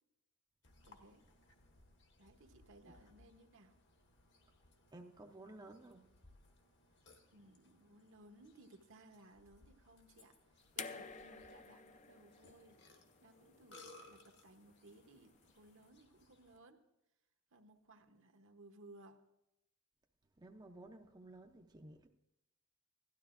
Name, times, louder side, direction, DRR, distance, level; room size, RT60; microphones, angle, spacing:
Burping eructation, 0.6-16.6, left 2 dB, 55° left, 1.4 m, -65 dB
voice 1, 0.8-1.2 2.2-3.8 7.3-12.8 13.2-16.8 17.5-19.2, right 2 dB, 60° right, 6 dB, 1.0 m, -61 dB
voice 2, 4.9-6.1 20.4-22.1, right 2 dB, 20° right, 2 dB, 0.5 m, -55 dB
sound 1, 10.8-13.9 15.1-15.2, left 5 dB, 35° left, 0.4 m, -50 dB
16.5 x 12.5 x 2.5 m, 0.90 s
head